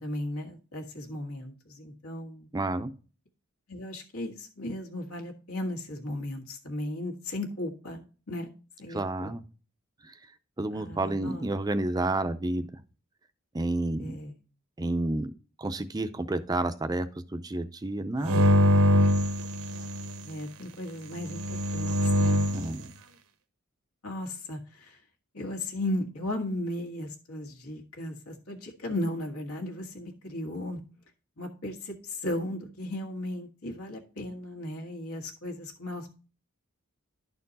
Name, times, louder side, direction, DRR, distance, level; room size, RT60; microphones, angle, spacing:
voice 1, 0.0-2.5 3.7-8.5 8.8-9.3 10.7-11.5 14.0-14.4 20.2-22.4 24.0-25.0 25.3-30.8 31.4-36.2, left 1 dB, 85° left, 2 dB, 1.7 m, -36 dB
voice 2, 2.5-2.9 8.9-9.4 10.0-10.1 10.6-12.7 13.5-14.2 14.8-15.3 15.6-18.5 22.5-22.9, right 2 dB, 20° right, 10 dB, 0.4 m, -30 dB
sound 1, 18.2-20.2 21.2-22.7, equal, 75° right, 0.9 m, -23 dB
11.5 x 4.4 x 4.0 m, 0.36 s
head